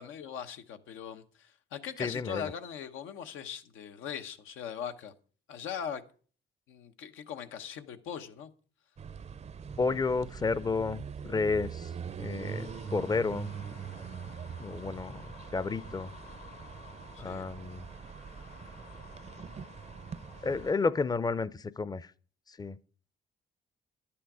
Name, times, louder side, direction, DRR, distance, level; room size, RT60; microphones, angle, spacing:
voice 1, 0.0-5.1 5.5-6.0 6.7-8.5 17.1-17.5, left 8 dB, 90° left, 0.9 m, -40 dB
voice 2, 2.0-2.5 9.8-11.9 12.2-13.5 14.6-15.2 15.5-16.1 17.2-17.8 20.4-22.1 22.6-22.8, left 4 dB, 20° left, 0.5 m, -31 dB
sound 1, 9.0-20.7, right 7 dB, 35° right, 0.5 m, -43 dB
sound 2, 12.4-20.8, left 7 dB, 50° left, 0.9 m, -53 dB
10.5 x 8.7 x 4.8 m
cardioid pair, 90°, 20 cm